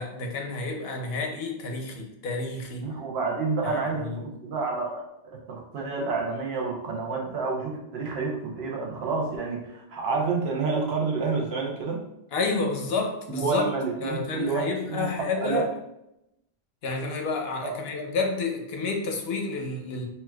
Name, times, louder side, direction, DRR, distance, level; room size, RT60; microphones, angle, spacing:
voice 1, 0.0-2.9 3.6-4.2 12.3-13.6 14.0-15.7 16.8-20.0, left 3 dB, 75° left, 2 dB, 0.8 m, -30 dB
voice 2, 2.8-12.0 13.3-15.6 17.6-17.7, right 4 dB, 80° right, -1 dB, 0.9 m, -29 dB
4.2 x 2.2 x 2.2 m, 0.84 s
omnidirectional pair, 1.1 m